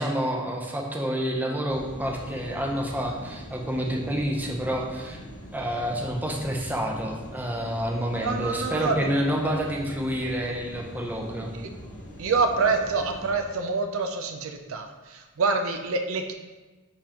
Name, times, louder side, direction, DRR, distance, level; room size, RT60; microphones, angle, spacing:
voice 1, 0.0-5.2 5.5-11.5, equal, 10° right, -1 dB, 0.7 m, -28 dB
sound 1, 1.7-13.3, equal, 80° left, 2.0 m, -42 dB
voice 2, 8.1-9.1 9.4-9.6 11.5-11.7 12.2-16.3, right 4 dB, 65° right, 5 dB, 0.5 m, -27 dB
9.8 x 3.6 x 2.9 m, 1.2 s
head